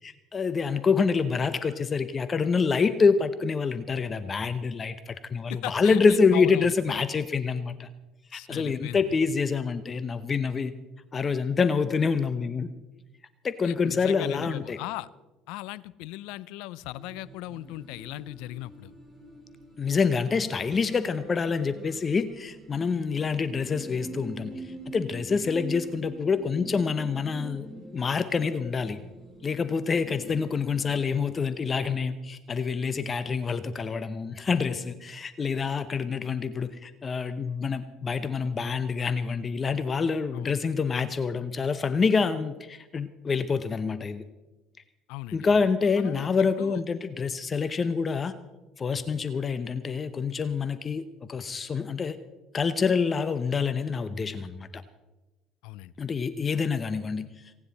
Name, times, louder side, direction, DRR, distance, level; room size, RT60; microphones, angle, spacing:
voice 1, 0.0-7.9 8.3-10.7 11.1-12.7 13.4-14.8 19.8-27.7 27.9-29.0 29.4-44.2 45.3-48.3 48.8-52.2 52.5-54.8 56.0-57.7, left 5 dB, 35° left, 13 dB, 0.8 m, -27 dB
voice 2, 5.5-6.7 8.3-9.1 13.6-15.1 15.5-18.9 40.3-40.5 45.1-45.6 46.0-46.8 55.6-55.9, left 17 dB, 80° left, 20 dB, 0.5 m, -38 dB
sound 1, 16.8-32.0, right 2 dB, ahead, 7.5 m, -45 dB
29.5 x 9.8 x 4.2 m, 1.1 s
supercardioid pair, 85°, 0 cm